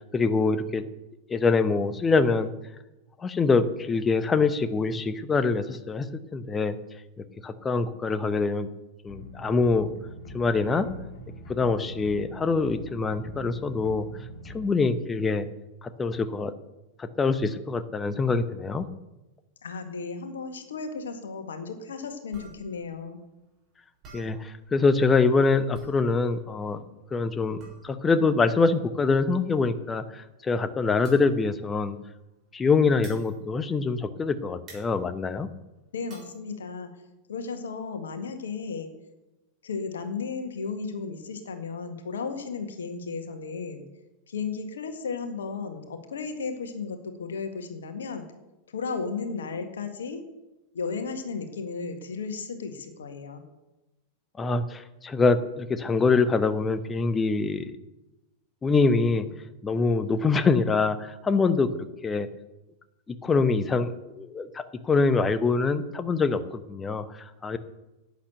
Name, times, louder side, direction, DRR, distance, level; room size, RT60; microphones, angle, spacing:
voice 1, 0.1-0.9 1.3-2.5 3.2-6.8 7.2-8.7 9.0-9.9 10.3-10.9 11.5-14.0 14.5-15.5 15.8-16.5 17.0-18.9 24.1-26.8 27.1-32.0 32.5-35.5 54.4-57.8 58.6-59.3 59.6-62.3 63.1-67.6, left 4 dB, 15° left, 12 dB, 0.9 m, -24 dB
sound 1, 9.1-14.7, equal, 45° left, 3.7 m, -43 dB
voice 2, 19.6-23.2 35.9-36.9 37.3-38.9 39.6-43.8 44.3-48.3 48.7-50.2 50.7-53.4, left 5 dB, 65° left, 7 dB, 1.8 m, -34 dB
sound 2, 22.3-34.3 34.6-36.4, right 3 dB, 30° right, 6.1 m, -52 dB
11.5 x 8.5 x 8.1 m, 1.0 s
figure-of-eight pair, 90°, 0 cm